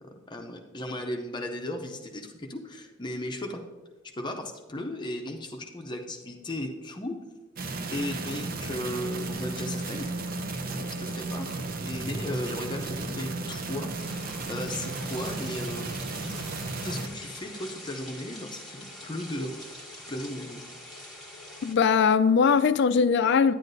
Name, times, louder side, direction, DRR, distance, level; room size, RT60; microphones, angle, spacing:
voice 1, 0.0-3.6 4.2-7.2 7.9-10.1 10.6-15.9 16.8-19.6 20.1-20.6, left 1 dB, 25° left, 0.6 m, -36 dB
sound 1, 7.6-17.1, right 3 dB, 50° right, 0.7 m, -34 dB
sound 2, 14.0-21.7, left 1 dB, ahead, 1.6 m, -44 dB
voice 2, 21.6-23.5, left 6 dB, 60° left, 0.4 m, -21 dB
9.9 x 9.3 x 2.7 m
head